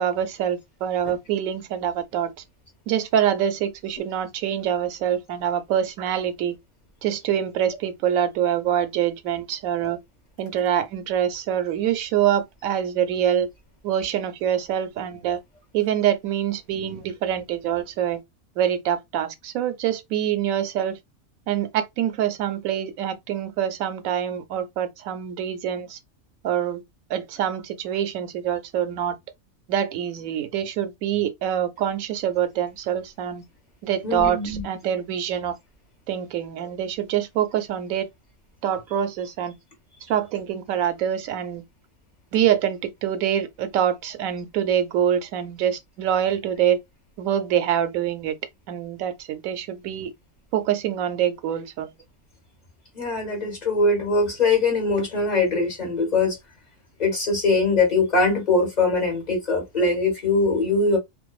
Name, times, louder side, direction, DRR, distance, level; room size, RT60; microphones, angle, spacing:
voice 1, 0.0-2.3 2.9-6.6 7.0-10.0 10.4-13.5 13.8-15.4 15.7-18.2 18.6-21.0 21.5-26.0 26.4-26.8 27.1-29.2 29.7-33.4 33.8-35.5 36.1-38.1 38.6-39.5 40.1-41.6 42.3-46.8 47.2-48.3 48.7-50.1 50.5-51.9, right 9 dB, 85° right, 1.0 m, -25 dB
voice 2, 34.0-34.6 52.9-56.4 57.0-61.0, left 3 dB, 35° left, 1.1 m, -22 dB
2.6 x 2.2 x 2.3 m
omnidirectional pair, 1.4 m